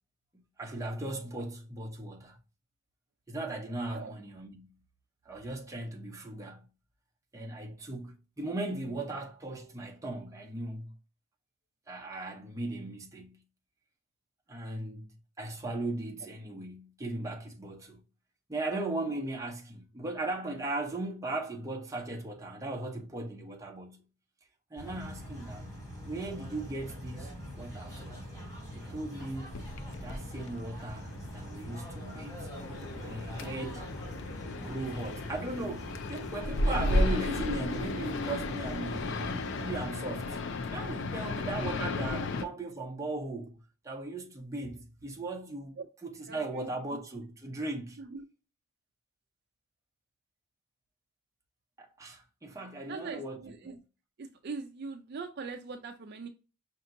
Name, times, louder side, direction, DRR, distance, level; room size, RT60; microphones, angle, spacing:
voice 1, 0.6-2.4 3.3-4.7 5.3-6.6 7.3-10.9 11.9-13.4 14.5-18.0 18.5-24.0 24.7-25.7 26.0-28.2 28.7-29.6 30.0-32.5 32.9-33.8 34.5-40.4 40.7-43.6 43.8-48.0 51.8-53.4 53.6-53.7, right 2 dB, 15° right, 0.7 m, -38 dB
sound 1, 24.8-39.9, equal, 15° left, 1.9 m, -43 dB
sound 2, 29.5-42.5, left 2 dB, 55° left, 0.4 m, -34 dB
voice 2, 41.1-41.4 45.8-45.9 46.3-47.0 48.0-48.2 52.9-53.8 54.2-56.3, right 4 dB, 45° right, 0.4 m, -42 dB
5.7 x 2.8 x 2.5 m
head